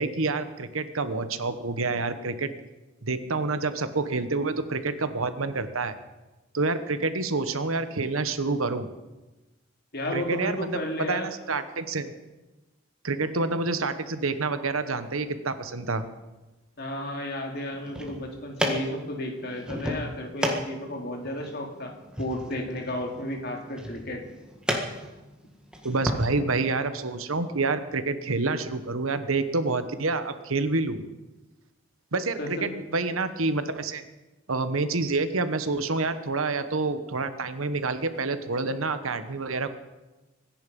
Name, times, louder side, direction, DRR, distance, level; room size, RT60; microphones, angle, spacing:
voice 1, 0.0-2.5 3.0-5.9 6.5-8.9 10.1-10.8 11.1-12.1 13.0-16.0 25.8-31.0 32.1-34.0 34.5-39.7, right 3 dB, 85° right, 10 dB, 1.2 m, -28 dB
voice 2, 9.9-11.3 16.8-21.9 22.2-24.2 32.4-32.7, left 1 dB, 50° left, 2 dB, 2.8 m, -33 dB
sound 1, 17.7-26.2, equal, 5° right, 1.8 m, -34 dB
24.5 x 10.5 x 5.4 m, 1.1 s
head